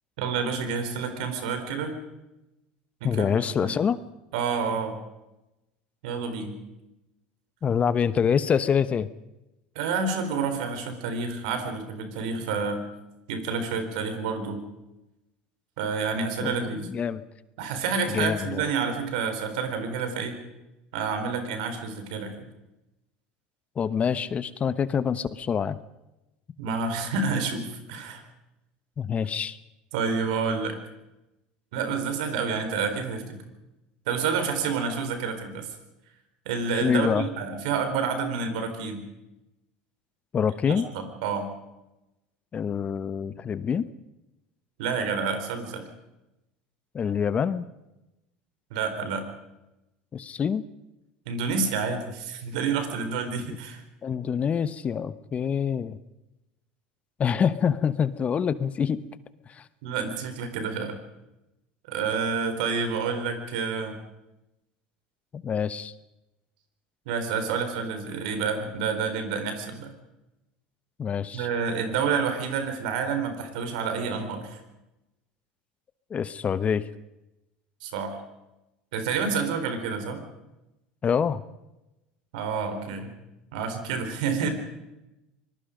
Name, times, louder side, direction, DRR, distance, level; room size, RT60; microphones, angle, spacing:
voice 1, 0.2-2.0 3.0-3.7 4.3-5.0 6.0-6.5 9.7-12.9 13.3-14.6 15.8-16.9 17.6-20.4 20.9-22.3 26.6-28.2 29.9-30.8 31.7-33.4 34.1-35.7 36.5-39.1 40.7-41.5 44.8-45.9 48.7-49.2 51.3-53.8 59.8-61.0 61.9-64.0 67.1-69.9 71.3-74.6 77.8-78.2 78.9-80.2 82.3-83.1 83.5-84.5, right 5 dB, 75° right, 7 dB, 4.2 m, -29 dB
voice 2, 3.0-4.0 7.6-9.1 16.4-17.2 18.1-18.6 23.8-25.8 29.0-29.6 36.8-37.2 40.3-40.9 42.5-43.9 46.9-47.6 50.1-50.6 54.0-56.0 57.2-59.0 59.5-59.6 65.3-65.9 71.0-71.5 76.1-76.8 81.0-81.4, left 7 dB, 30° left, 15 dB, 1.0 m, -26 dB
25.0 x 20.5 x 5.2 m, 0.95 s
hypercardioid pair, 95°, 4 cm